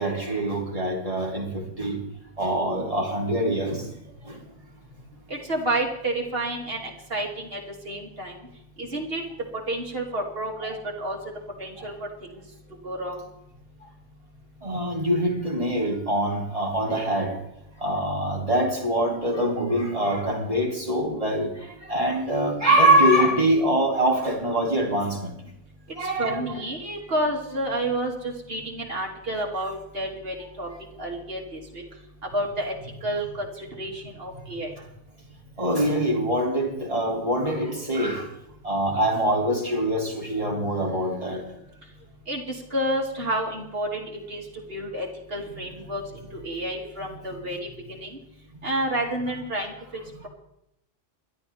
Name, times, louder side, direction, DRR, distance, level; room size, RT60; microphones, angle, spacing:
voice 1, 0.0-2.0 2.4-3.9 4.2-4.4 11.8-11.9 14.6-17.3 17.8-25.3 26.0-26.4 35.6-38.3 38.6-41.4, right 1 dB, 30° right, -1 dB, 3.4 m, -24 dB
voice 2, 5.3-7.6 7.8-8.3 8.8-9.2 9.7-11.2 11.6-11.9 12.2-12.3 12.8-13.2 26.2-30.7 31.0-31.8 32.3-32.7 33.0-34.7 42.3-44.4 44.7-48.1 48.6-49.7, right 1 dB, 50° right, 0 dB, 3.1 m, -30 dB
29.0 x 12.5 x 3.6 m, 0.83 s
omnidirectional pair, 1.2 m